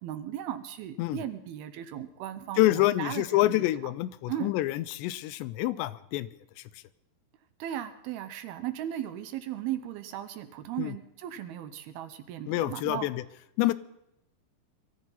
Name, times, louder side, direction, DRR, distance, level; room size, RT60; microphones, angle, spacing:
voice 1, 0.0-3.7 4.3-4.5 7.6-13.1, right 11 dB, 75° right, 10 dB, 2.6 m, -37 dB
voice 2, 2.6-6.3 10.8-10.9 12.5-13.2 13.6-13.7, left 16 dB, 90° left, 16 dB, 2.9 m, -27 dB
22.0 x 14.0 x 4.1 m, 0.83 s
omnidirectional pair, 5.0 m